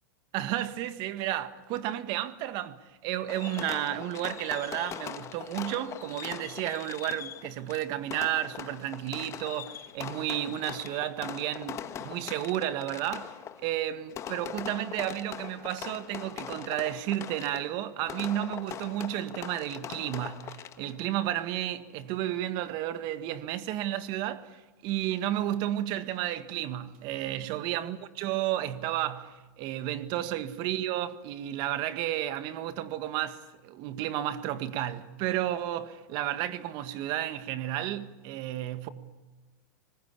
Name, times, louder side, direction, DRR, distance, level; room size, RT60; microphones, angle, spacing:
voice 1, 0.3-38.9, right 13 dB, 50° right, 1.8 m, -32 dB
Fireworks, 3.3-21.0, left 9 dB, 30° left, 1.5 m, -41 dB
25.5 x 20.0 x 8.4 m
hypercardioid pair, 120°, 10 cm